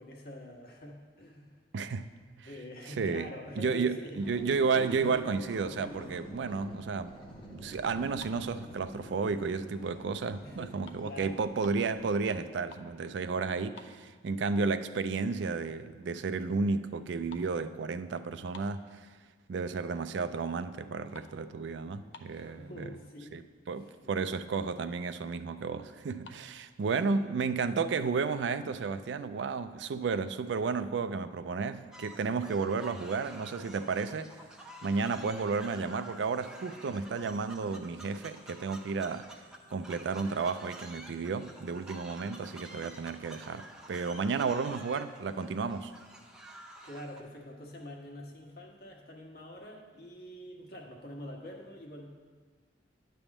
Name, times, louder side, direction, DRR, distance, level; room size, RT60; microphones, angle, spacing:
voice 1, 0.0-1.6 2.4-4.2 10.4-11.3 22.3-23.3 23.7-24.1 27.1-27.3 46.8-52.1, left 1 dB, 55° left, 0 dB, 1.3 m, -46 dB
voice 2, 1.7-2.1 2.4-2.5 3.0-3.3 3.6-7.1 7.5-19.0 19.5-22.8 23.3-23.4 23.7-34.3 34.8-39.3 39.7-45.9, right 4 dB, 75° right, 11 dB, 0.4 m, -32 dB
sound 1, 4.1-12.7, equal, 25° left, 1.1 m, -47 dB
sound 2, 8.2-9.4 9.9-10.2 10.5-11.9 12.4-13.0 13.3-13.4 13.7-14.6 15.0-15.1 15.7-15.8 16.0-16.4 16.6-19.4 19.9-20.3 20.6-22.6 23.3-23.4 23.6-23.8 24.2-24.3 24.6-25.2 26.0-26.4, left 4 dB, 85° left, 0.6 m, -54 dB
sound 3, 31.9-47.2, right 1 dB, 5° right, 0.6 m, -50 dB
9.8 x 3.5 x 7.1 m, 1.5 s
head